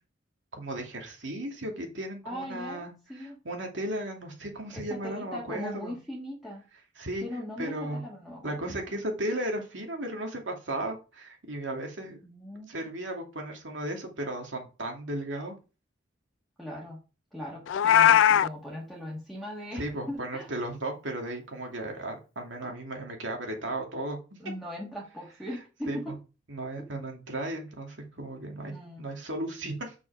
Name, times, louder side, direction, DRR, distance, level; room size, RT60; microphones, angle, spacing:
voice 1, 0.5-2.9 3.2-5.9 7.0-7.2 7.6-8.0 8.4-12.2 12.7-15.6 19.7-24.2 25.9-26.2 26.5-29.9, right 1 dB, 90° right, 2 dB, 2.4 m, -35 dB
voice 2, 2.2-3.4 4.7-6.6 7.2-9.0 12.2-12.8 16.6-17.0 17.3-20.5 22.6-22.7 24.4-26.2 28.7-29.1, equal, ahead, -4 dB, 1.6 m, -39 dB
Meow, 17.7-18.5, left 9 dB, 90° left, 0.3 m, -19 dB
6.3 x 5.6 x 5.1 m, 0.32 s
head